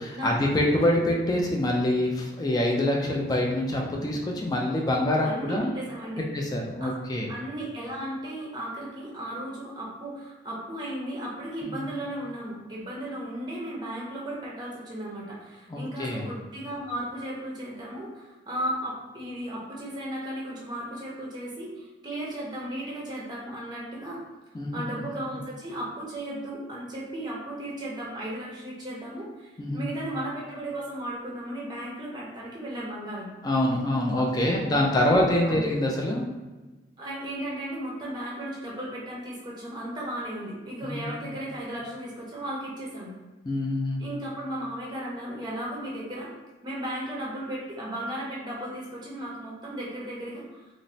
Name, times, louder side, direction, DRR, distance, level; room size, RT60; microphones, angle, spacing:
voice 1, 0.0-5.7 6.3-7.3 11.6-11.9 15.7-16.3 24.5-24.8 29.6-30.0 33.4-36.2 40.8-41.1 43.5-44.0, left 1 dB, 20° left, -1 dB, 0.3 m, -25 dB
voice 2, 5.2-6.2 6.8-6.9 7.3-24.2 24.7-33.3 34.2-35.2 35.4-35.6 37.0-43.1 44.0-46.3 46.6-50.6, right 1 dB, 25° right, -4 dB, 0.6 m, -35 dB
3.0 x 2.0 x 2.6 m, 1.2 s
head